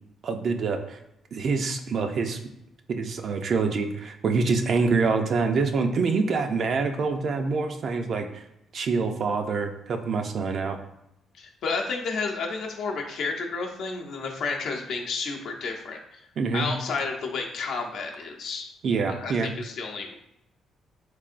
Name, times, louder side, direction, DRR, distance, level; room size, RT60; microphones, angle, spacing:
voice 1, 0.2-1.0 1.3-2.4 2.9-8.4 8.7-10.8 16.4-16.7 18.8-19.5, right 4 dB, 55° right, 5 dB, 0.4 m, -26 dB
voice 2, 11.4-16.2 16.5-18.7 19.1-20.1, left 4 dB, 75° left, 1 dB, 0.6 m, -31 dB
3.6 x 3.3 x 2.5 m, 0.82 s
cardioid pair, 90°, 0 cm